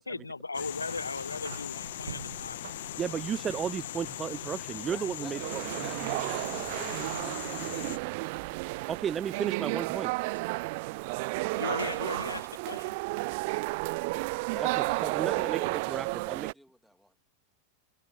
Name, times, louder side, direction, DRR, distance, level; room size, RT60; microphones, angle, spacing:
voice 1, 0.0-2.6 11.5-12.9, left 3 dB, 80° left, 0.7 m, -37 dB
sound 1, 0.5-8.0, left 14 dB, 55° left, 1.6 m, -40 dB
sound 2, 0.9-12.4, right 8 dB, 65° right, 2.0 m, -50 dB
voice 2, 3.0-5.8 8.9-10.3 14.6-16.5, right 8 dB, 25° right, 1.0 m, -34 dB
voice 3, 4.9-5.4 5.7-8.2 14.5-17.1, equal, ahead, 3.2 m, -49 dB
sound 3, 5.3-16.5, right 26 dB, 50° right, 0.3 m, -32 dB
figure-of-eight pair, 90°, 0 cm